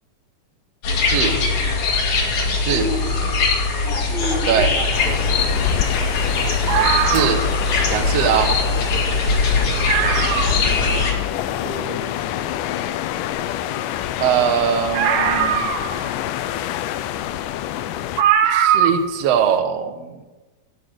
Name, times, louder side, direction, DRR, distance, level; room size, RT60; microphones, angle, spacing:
sound 1, 0.8-11.1, left 3 dB, 65° left, 3.7 m, -21 dB
voice 1, 1.2-1.6 2.6-3.2 4.0-6.1 9.4-9.9 10.5-11.3 11.6-12.5, left 1 dB, 15° right, -1 dB, 2.2 m, -32 dB
sound 2, 4.9-18.2, left 12 dB, 80° left, 2.1 m, -27 dB
sound 3, 6.7-7.6 8.7-8.8 9.1-9.2 9.6-9.7 9.9-10.7 11.2-11.3 14.9-16.2 17.4-17.5 18.2-19.1 19.4-19.5, right 9 dB, 80° right, 2.5 m, -20 dB
voice 2, 7.1-7.4 7.9-8.6 14.2-15.7 18.4-20.2, right 8 dB, 60° right, 7 dB, 1.9 m, -21 dB
14.5 x 8.4 x 6.4 m, 1.2 s
omnidirectional pair, 3.9 m